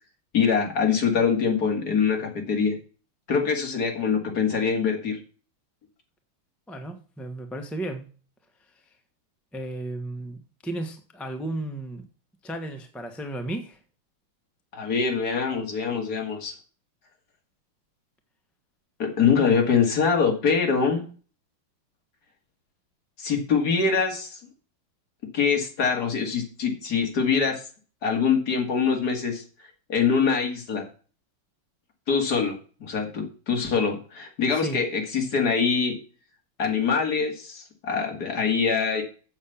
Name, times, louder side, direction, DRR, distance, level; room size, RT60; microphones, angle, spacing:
voice 1, 0.3-2.8 3.3-5.2 14.7-16.5 19.0-21.0 23.2-24.4 25.3-27.6 28.0-29.4 29.9-30.8 32.1-35.9 36.6-39.0, left 6 dB, 50° left, 2.7 m, -24 dB
voice 2, 6.7-8.1 9.5-12.0 12.4-13.8 34.5-34.8, right 1 dB, ahead, 0.8 m, -34 dB
7.5 x 7.2 x 7.1 m
omnidirectional pair, 2.3 m